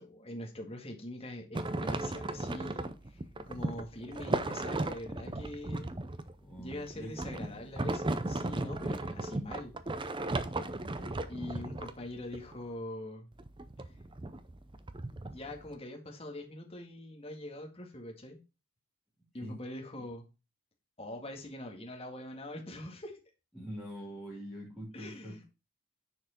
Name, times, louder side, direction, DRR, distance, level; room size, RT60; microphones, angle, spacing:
voice 1, 0.0-5.9 6.6-9.8 11.3-13.3 13.8-14.0 15.3-18.4 19.3-20.3 21.0-23.2 24.9-25.4, left 1 dB, 25° left, 2 dB, 1.8 m, -43 dB
sound 1, 1.5-12.5 13.4-15.7, right 2 dB, 20° right, 0.6 m, -36 dB
voice 2, 6.4-7.2 10.9-11.2 19.4-19.5 23.5-25.4, equal, 5° right, -4 dB, 3.0 m, -44 dB
9.8 x 4.6 x 4.4 m, 0.28 s
head